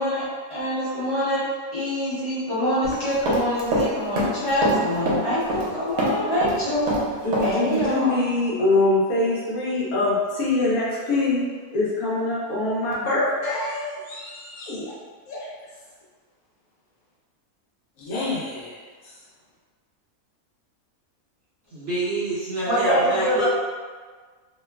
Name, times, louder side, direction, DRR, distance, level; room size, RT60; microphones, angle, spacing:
voice 1, 0.0-1.4 1.7-7.0 7.4-8.2 22.7-23.5, equal, 25° left, -11 dB, 0.8 m, -25 dB
Run, 2.8-3.9 4.2-5.7 6.0-7.5 7.8-7.9, right 1 dB, 80° right, 1.1 m, -24 dB
voice 2, 7.2-14.9 15.3-15.5 18.1-18.6, left 2 dB, 80° left, -6 dB, 1.2 m, -24 dB
voice 3, 21.7-23.5, right 2 dB, 55° right, -10 dB, 0.8 m, -27 dB
3.0 x 2.2 x 2.2 m, 1.5 s
omnidirectional pair, 1.5 m